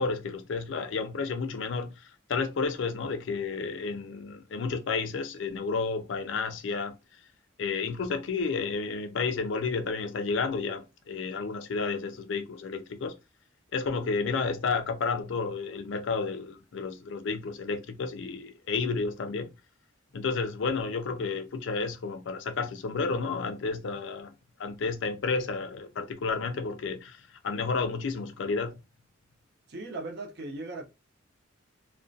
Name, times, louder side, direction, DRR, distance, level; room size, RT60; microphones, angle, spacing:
voice 1, 0.0-7.0 7.6-13.2 13.7-19.5 20.1-24.3 24.6-28.7, left 4 dB, 65° left, 0.4 m, -31 dB
voice 2, 29.7-30.8, right 2 dB, 55° right, 0.6 m, -38 dB
2.3 x 2.1 x 2.6 m
head